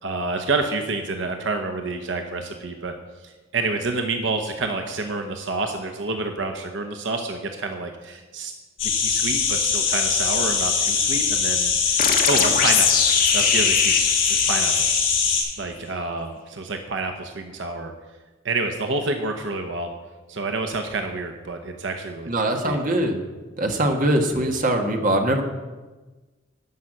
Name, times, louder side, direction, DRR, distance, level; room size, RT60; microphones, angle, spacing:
voice 1, 0.0-2.9 3.2-8.5 8.8-12.0 12.3-12.9 13.3-14.0 14.3-14.9 15.6-17.9 18.4-19.9 20.3-22.3 22.6-22.8, right 3 dB, 75° right, 5 dB, 0.9 m, -28 dB
sound 1, 8.8-15.4, left 6 dB, 80° left, 4.1 m, -22 dB
sound 2, 12.0-15.5, left 6 dB, 45° left, 1.4 m, -23 dB
voice 2, 22.3-23.2 23.6-25.4, right 1 dB, 45° right, 3 dB, 1.4 m, -22 dB
12.5 x 5.7 x 7.7 m, 1.2 s
head